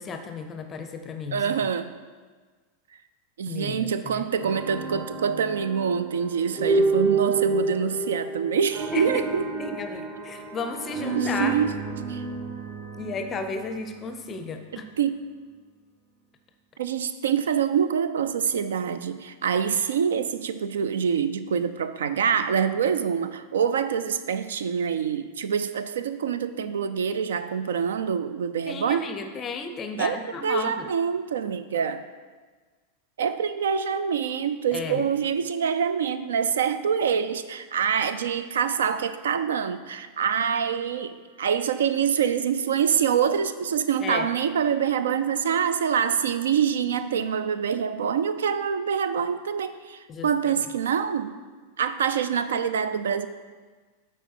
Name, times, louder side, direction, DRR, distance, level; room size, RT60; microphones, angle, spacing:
voice 1, 0.0-1.6 3.5-4.3 8.9-9.2 9.6-11.6 13.0-14.9 28.7-30.9 34.7-35.0 44.0-44.3 50.1-50.5, left 4 dB, 25° left, 7 dB, 0.5 m, -33 dB
voice 2, 1.3-1.9 3.4-9.4 11.1-11.7 12.0-12.2 14.7-15.2 16.8-29.1 30.0-32.1 33.2-51.4 51.8-53.3, right 7 dB, 65° right, 12 dB, 0.3 m, -25 dB
sound 1, 4.4-14.4, right 3 dB, 30° right, 0.9 m, -29 dB
8.0 x 4.6 x 4.3 m, 1.4 s
figure-of-eight pair, 90°, 0 cm